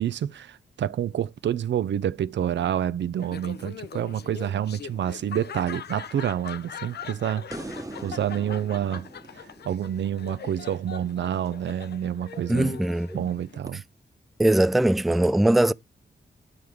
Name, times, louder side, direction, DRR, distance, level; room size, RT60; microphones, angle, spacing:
voice 1, 0.0-7.4 8.0-9.1 9.3-12.8 13.1-13.8, right 10 dB, 75° right, 0.4 m, -28 dB
Laughter, 3.2-13.6, left 7 dB, 60° left, 0.5 m, -41 dB
sound 1, 7.5-10.8 13.7-13.8, right 2 dB, 15° right, 1.1 m, -41 dB
voice 2, 12.5-13.3 14.4-15.7, right 1 dB, ahead, 0.3 m, -21 dB
9.4 x 4.8 x 3.5 m
cardioid pair, 45°, 19 cm